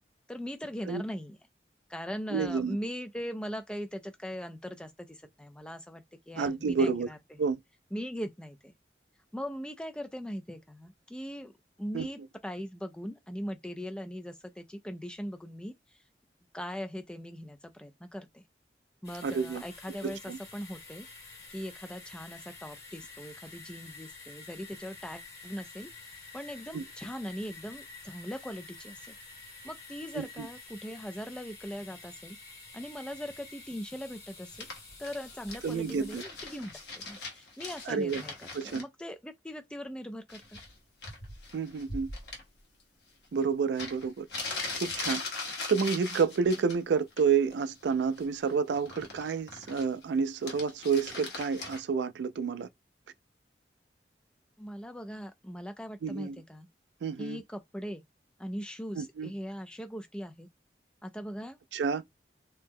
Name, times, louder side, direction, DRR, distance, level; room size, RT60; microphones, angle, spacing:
voice 1, 0.3-1.4 1.9-7.4 7.9-8.7 9.3-11.5 11.8-16.0 16.5-18.4 19.0-21.1 21.5-29.2 29.6-32.4 32.7-34.7 35.0-40.6 54.6-56.7 57.2-58.0 58.4-60.5 61.0-61.6, equal, 5° left, 0.3 m, -40 dB
voice 2, 2.3-2.8 6.4-7.1 7.4-7.6 11.9-12.1 19.2-19.6 20.0-20.4 26.7-26.8 30.1-30.5 35.6-36.2 37.9-38.2 38.5-38.8 41.5-42.1 43.3-44.3 44.8-45.2 45.7-52.7 56.0-56.4 57.0-57.4 59.0-59.3 61.7-62.0, right 5 dB, 85° right, 0.4 m, -29 dB
sound 1, 19.0-36.2, left 3 dB, 65° left, 1.5 m, -49 dB
sound 2, 34.5-38.8 40.3-40.7 41.0-42.4 43.4-43.5 43.8-46.8 47.1-47.5 47.8-50.0 50.3-51.8, left 3 dB, 85° left, 1.1 m, -40 dB
2.8 x 2.1 x 3.5 m
head